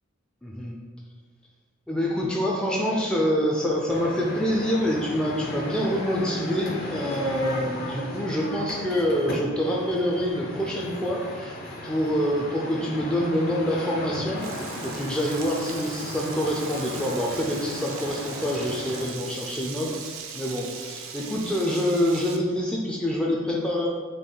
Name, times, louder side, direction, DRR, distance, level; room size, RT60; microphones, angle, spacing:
voice 1, 0.4-0.8 1.9-11.5 11.8-20.0 20.3-23.9, equal, 5° left, -3 dB, 0.3 m, -26 dB
sound 1, 3.9-19.1, left 1 dB, 50° left, 0.7 m, -36 dB
Frying (food), 14.4-22.4, right 6 dB, 85° right, 0.5 m, -39 dB
4.2 x 2.9 x 3.8 m, 1.5 s
head